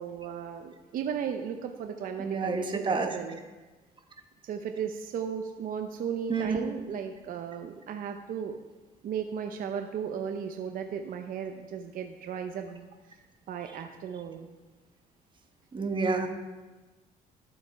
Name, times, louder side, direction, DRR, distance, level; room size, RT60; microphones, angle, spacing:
voice 1, 0.0-3.4 4.4-8.6 9.0-12.8 13.5-14.5, right 7 dB, 55° right, 5 dB, 0.8 m, -35 dB
voice 2, 2.2-3.2 6.3-6.6 15.7-16.3, right 4 dB, 30° right, 5 dB, 1.3 m, -28 dB
12.0 x 7.4 x 4.6 m, 1.2 s
cardioid pair, 110°, 17 cm